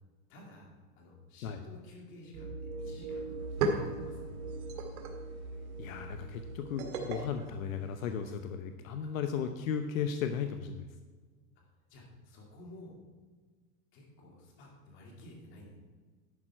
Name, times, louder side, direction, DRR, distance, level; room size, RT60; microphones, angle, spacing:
voice 1, 0.3-3.4 3.7-4.3 9.0-9.1 11.9-13.0 13.9-15.8, left 1 dB, 30° left, -1 dB, 2.4 m, -52 dB
sound 1, 2.3-7.7, right 3 dB, 45° right, 2.8 m, -42 dB
sound 2, 2.9-3.0 3.3-8.5, right 3 dB, 80° right, 2.0 m, -38 dB
voice 2, 5.8-10.9, left 7 dB, 70° left, 7 dB, 0.9 m, -35 dB
11.0 x 8.8 x 4.4 m, 1.4 s
supercardioid pair, 170°, 42 cm